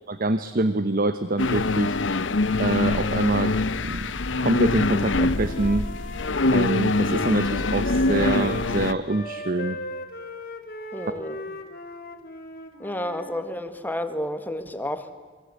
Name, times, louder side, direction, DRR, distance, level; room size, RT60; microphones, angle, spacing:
voice 1, 0.1-2.0 2.6-3.5 3.8-4.1 4.4-5.9 6.5-9.8, right 2 dB, 50° right, 12 dB, 0.9 m, -25 dB
sound 1, 1.4-8.9, left 2 dB, 75° left, 0.9 m, -24 dB
Wind instrument woodwind instrument, 4.8-8.7 9.1-13.4, left 2 dB, 55° left, 2.4 m, -37 dB
voice 2, 10.9-11.4 12.8-15.1, left 1 dB, 10° left, 9 dB, 1.6 m, -31 dB
28.0 x 23.0 x 8.3 m, 1.4 s
head